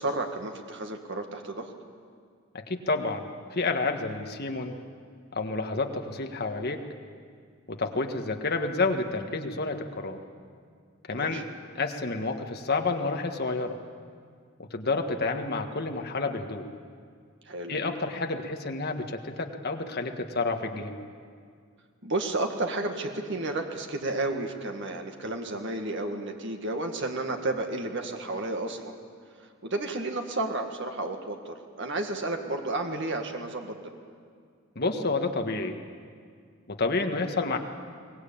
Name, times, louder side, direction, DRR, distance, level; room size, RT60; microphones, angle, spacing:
voice 1, 0.0-1.7 11.1-11.4 17.5-17.7 22.0-29.0 29.6-33.8, right 2 dB, 60° right, 4 dB, 1.9 m, -32 dB
voice 2, 2.5-4.8 5.3-6.8 7.7-10.2 11.1-11.4 11.7-13.8 14.7-16.6 17.7-21.0 34.7-35.8 36.7-37.6, left 3 dB, 50° left, 5 dB, 1.6 m, -29 dB
23.0 x 19.5 x 8.7 m, 2.1 s
head